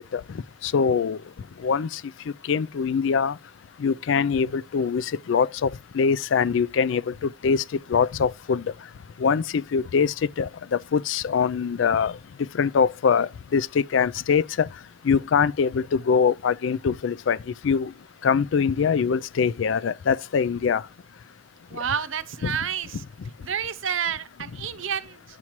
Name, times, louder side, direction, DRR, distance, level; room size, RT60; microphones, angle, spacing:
voice 1, 0.6-1.2 1.6-2.0 2.5-3.3 3.8-5.7 5.9-7.6 7.9-8.6 9.2-12.1 12.6-14.7 15.0-17.4 17.6-17.9 18.2-20.8 22.4-22.5, left 6 dB, 70° left, 0.4 m, -23 dB
voice 2, 21.7-23.0 23.4-25.2, right 8 dB, 80° right, 0.7 m, -29 dB
9.6 x 7.2 x 3.0 m
head